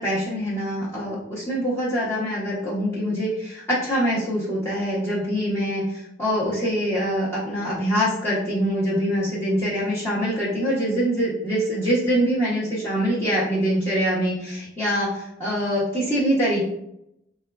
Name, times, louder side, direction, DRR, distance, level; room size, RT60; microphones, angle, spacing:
voice 1, 0.0-16.7, equal, 15° left, -10 dB, 0.8 m, -24 dB
4.3 x 2.2 x 2.3 m, 0.78 s
head